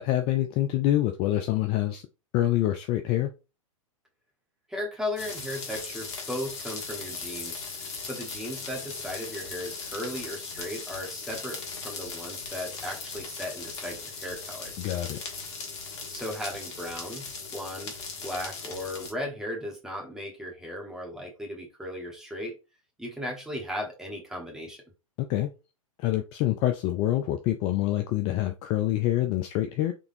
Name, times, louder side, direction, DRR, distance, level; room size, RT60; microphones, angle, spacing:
voice 1, 0.0-2.0 2.3-3.3 14.8-15.2 25.2-25.5 26.0-29.9, left 14 dB, 30° left, 0.4 m, -26 dB
voice 2, 4.7-14.7 16.1-17.2 17.5-22.6 23.0-24.8, left 1 dB, 5° right, 1.2 m, -36 dB
sound 1, 5.2-19.1, left 4 dB, 55° left, 1.2 m, -38 dB
3.7 x 3.4 x 2.6 m
figure-of-eight pair, 105°, 18 cm